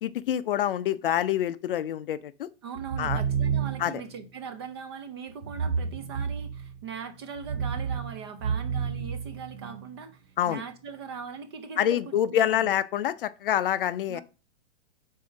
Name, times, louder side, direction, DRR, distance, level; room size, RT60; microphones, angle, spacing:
voice 1, 0.0-2.5 3.0-3.2 3.8-3.9 10.4-10.6 11.8-14.2, left 11 dB, 50° left, 0.5 m, -26 dB
voice 2, 2.6-12.7 14.1-14.2, right 6 dB, 25° right, 0.4 m, -40 dB
sound 1, 2.8-4.0 5.4-6.8 7.3-9.9, right 7 dB, 60° right, 0.7 m, -30 dB
5.6 x 4.4 x 6.2 m
hypercardioid pair, 160°, 36 cm